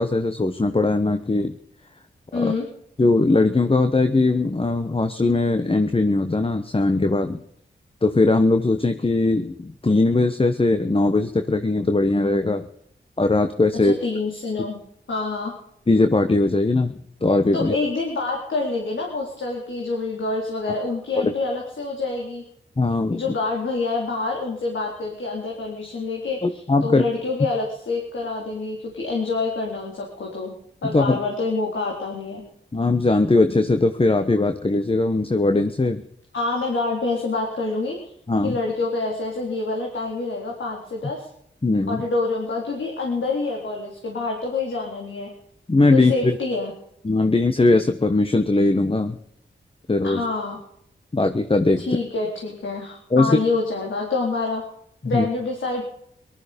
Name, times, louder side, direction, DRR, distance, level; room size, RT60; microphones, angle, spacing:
voice 1, 0.0-1.5 2.3-2.5 3.0-7.4 8.0-12.6 13.2-14.0 15.9-16.9 17.2-17.7 21.2-21.3 22.8-23.2 26.4-27.0 30.9-31.2 32.7-36.0 38.3-38.6 41.6-42.0 45.7-46.4 47.0-49.2 49.9-50.2 51.1-51.9 53.1-53.4 55.0-55.3, left 2 dB, 30° left, 8 dB, 1.2 m, -20 dB
voice 2, 2.3-2.6 13.8-14.8 15.1-15.5 17.5-22.4 23.1-30.5 30.8-32.4 36.3-38.1 38.4-41.3 41.9-45.3 45.9-46.7 50.0-50.6 51.8-54.6 55.0-55.8, left 3 dB, 75° left, -1 dB, 3.9 m, -27 dB
19.0 x 13.0 x 5.3 m, 0.70 s
cardioid pair, 50°, 20 cm